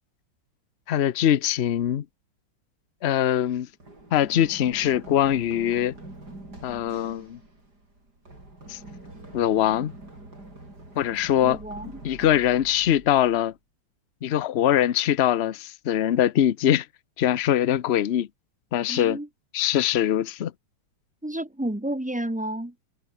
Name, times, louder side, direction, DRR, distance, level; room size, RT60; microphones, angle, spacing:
voice 1, 0.9-2.0 3.0-3.7 4.1-5.9 6.6-7.4 8.7-8.8 9.3-9.9 10.9-13.5 14.2-16.9 17.2-18.3 18.7-19.2 19.5-20.5, left 11 dB, 70° left, 0.6 m, -22 dB
Run, 3.8-13.5, right 2 dB, 50° right, 8.5 m, -45 dB
voice 2, 11.4-11.9 18.9-19.3 21.2-22.7, right 1 dB, 5° right, 1.1 m, -31 dB
omnidirectional pair, 2.2 m